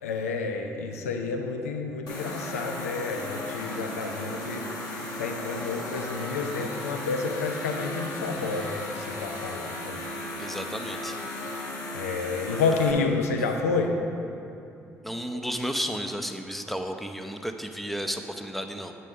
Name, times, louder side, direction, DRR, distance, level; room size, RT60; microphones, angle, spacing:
voice 1, 0.0-10.0 11.9-14.0 15.3-15.4, left 4 dB, 80° left, 4 dB, 0.4 m, -30 dB
sound 1, 2.1-12.9, left 1 dB, 55° left, 1.2 m, -35 dB
voice 2, 10.4-11.2 15.0-18.9, equal, ahead, 6 dB, 0.5 m, -33 dB
8.2 x 5.3 x 3.5 m, 2.7 s
figure-of-eight pair, 45°, 8 cm